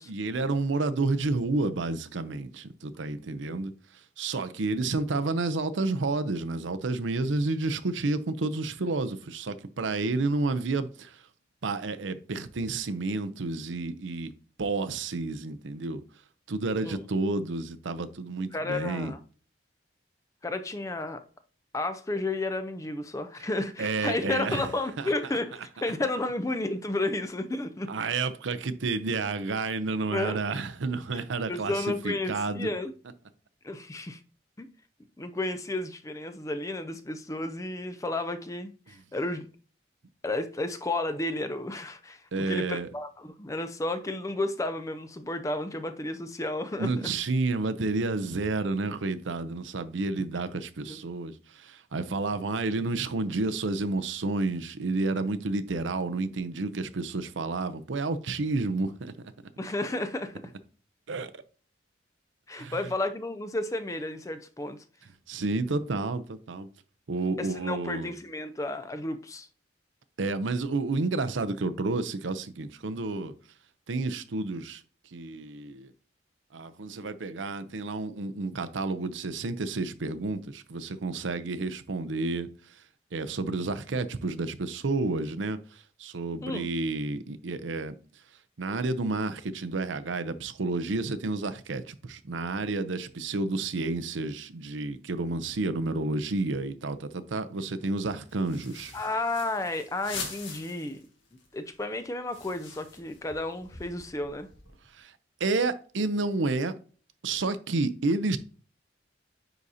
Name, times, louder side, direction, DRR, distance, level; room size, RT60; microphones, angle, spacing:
voice 1, 0.1-3.7 4.2-11.2 11.6-14.3 14.6-16.0 16.5-19.1 23.8-24.6 25.0-25.1 27.9-32.7 42.3-42.9 46.8-59.1 61.1-61.3 62.5-62.8 65.3-66.7 67.1-68.1 70.2-73.3 73.9-74.8 75.1-75.9 76.5-82.5 83.1-85.6 86.0-87.9 88.6-98.9 105.0-105.1 105.4-106.7 107.2-108.4, right 3 dB, 85° right, 0.6 m, -30 dB
voice 2, 18.5-19.2 20.4-21.2 21.7-28.0 30.1-30.4 31.1-31.2 31.5-32.9 33.6-34.2 34.6-34.7 35.2-39.5 40.2-47.1 50.9-51.0 59.6-60.4 62.5-64.8 67.4-69.5 86.4-86.7 98.9-101.0 101.5-104.5, left 2 dB, 15° left, 0.5 m, -32 dB
sound 1, 98.3-101.1 101.4-101.5 101.7-104.9, left 5 dB, 80° left, 1.8 m, -43 dB
9.8 x 4.0 x 2.8 m
head